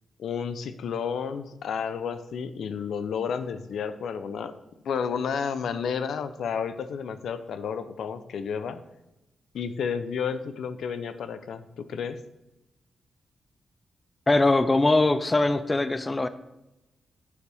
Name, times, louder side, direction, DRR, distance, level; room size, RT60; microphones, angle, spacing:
voice 1, 0.2-4.6 4.8-8.8 9.5-12.2, left 6 dB, 85° left, 11 dB, 0.6 m, -31 dB
voice 2, 14.3-16.3, left 2 dB, 20° left, 12 dB, 0.4 m, -21 dB
8.6 x 8.0 x 3.5 m, 0.95 s
wide cardioid pair, 140°, 0 cm